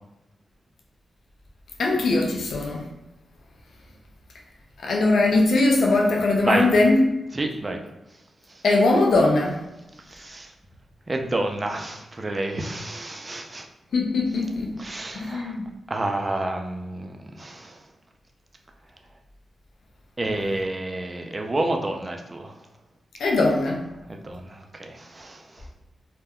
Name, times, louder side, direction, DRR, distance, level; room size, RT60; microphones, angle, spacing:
voice 1, 1.8-2.9 4.8-7.1 8.6-9.6 13.9-14.7 15.1-15.7 23.2-23.8, left 2 dB, 75° left, 0 dB, 0.4 m, -20 dB
voice 2, 7.3-7.8 8.5-8.6 10.1-10.5 11.1-13.7 14.8-15.6 15.9-17.8 20.2-22.5 24.1-25.7, right 2 dB, 35° right, 3 dB, 0.4 m, -29 dB
2.2 x 2.1 x 3.5 m, 0.97 s
cardioid pair, 55°, 0 cm